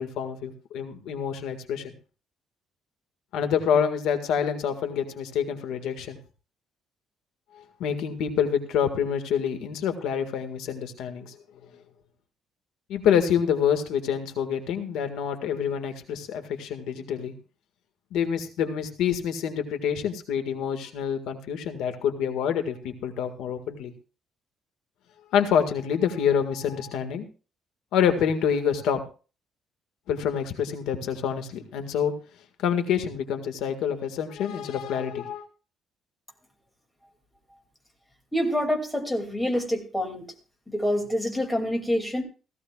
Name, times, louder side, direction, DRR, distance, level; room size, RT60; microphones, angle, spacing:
voice 1, 0.0-1.9 3.3-6.2 7.5-11.3 12.9-17.3 18.1-23.9 25.3-27.3 27.9-29.0 30.1-32.1 32.6-35.4, left 8 dB, 85° left, 6 dB, 1.8 m, -27 dB
voice 2, 38.3-40.2 40.7-42.2, equal, 5° left, 2 dB, 2.5 m, -26 dB
17.0 x 15.0 x 2.4 m, 0.36 s
cardioid pair, 150°, 0 cm